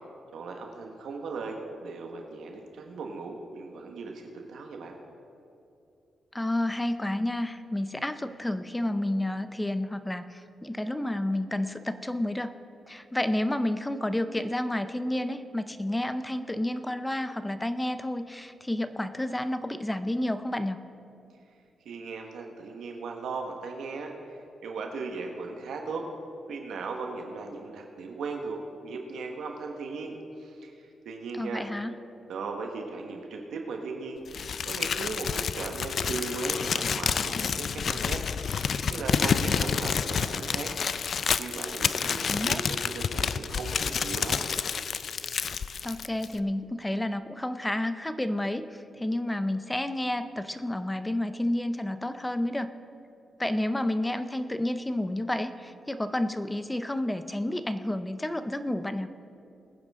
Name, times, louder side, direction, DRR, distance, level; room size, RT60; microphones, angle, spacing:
voice 1, 0.3-5.0 21.8-26.1 26.5-31.6 32.3-34.2 34.7-40.8 41.4-44.4, right 4 dB, 85° right, 2 dB, 1.4 m, -37 dB
voice 2, 6.3-12.5 12.9-20.8 31.4-31.9 42.3-42.6 45.8-52.7 53.4-59.1, left 1 dB, 10° left, 10 dB, 0.6 m, -30 dB
Crumpling crinkling, 34.3-46.4, left 6 dB, 55° left, 0.4 m, -29 dB
21.5 x 9.7 x 3.7 m, 2.7 s
cardioid pair, 115°, 0 cm